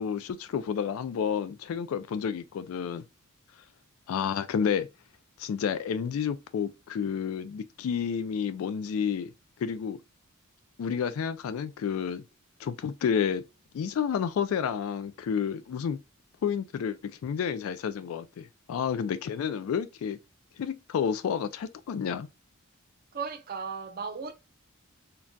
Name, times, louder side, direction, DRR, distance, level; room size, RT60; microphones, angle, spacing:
voice 1, 0.0-3.0 4.1-4.9 5.4-9.3 9.6-10.0 10.8-12.2 12.6-13.4 13.7-16.0 16.4-20.2 20.6-22.3, left 7 dB, 70° left, 0.3 m, -30 dB
voice 2, 23.1-24.3, right 5 dB, 45° right, 0.6 m, -35 dB
3.8 x 2.2 x 2.2 m
head